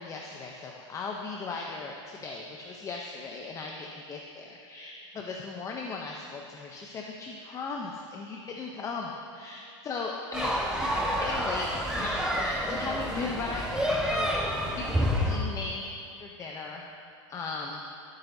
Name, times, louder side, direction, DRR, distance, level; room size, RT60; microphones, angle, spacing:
voice 1, 0.0-10.5 10.8-14.3 14.7-15.9 16.2-16.8 17.3-17.8, left 4 dB, 20° left, 0 dB, 0.7 m, -37 dB
sound 1, 10.3-15.4, equal, 5° right, 1.3 m, -29 dB
16.5 x 8.9 x 2.7 m, 2.5 s
supercardioid pair, 135°, 16 cm